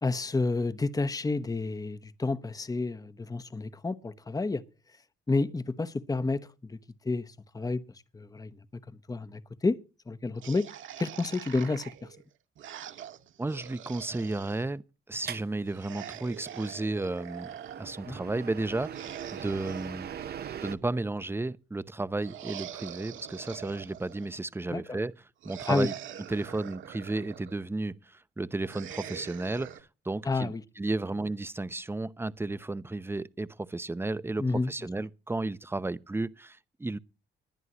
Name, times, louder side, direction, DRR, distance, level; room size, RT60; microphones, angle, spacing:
voice 1, 0.0-4.6 5.3-6.8 7.0-7.8 8.1-8.5 8.9-9.8 10.1-11.9 18.1-18.2 24.7-25.0 25.7-25.9 30.2-30.6 34.4-34.7, left 3 dB, 20° left, 1.0 m, -30 dB
sound 1, 10.4-14.7 15.7-17.9 18.7-21.1 22.2-24.4 25.4-27.6 28.6-29.8, right 10 dB, 75° right, 1.9 m, -44 dB
voice 2, 13.4-20.1 20.6-25.1 25.4-25.9 26.3-37.0, right 2 dB, 10° right, 0.7 m, -33 dB
sound 2, 15.2-20.8, right 9 dB, 55° right, 0.9 m, -42 dB
20.5 x 11.0 x 3.0 m
cardioid pair, 90°, 20 cm